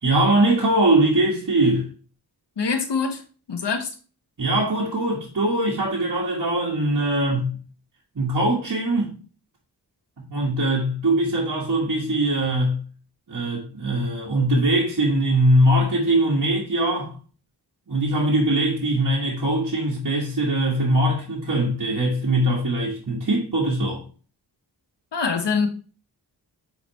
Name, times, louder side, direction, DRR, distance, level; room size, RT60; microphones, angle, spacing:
voice 1, 0.0-1.9 4.4-7.5 8.1-9.1 10.2-12.8 13.3-17.1 17.9-24.0, right 1 dB, 50° right, 1.6 m, -21 dB
voice 2, 2.6-3.2 3.5-3.9 25.1-25.7, left 5 dB, 75° left, 1.2 m, -24 dB
8.3 x 3.9 x 3.1 m
wide cardioid pair, 60°, 42 cm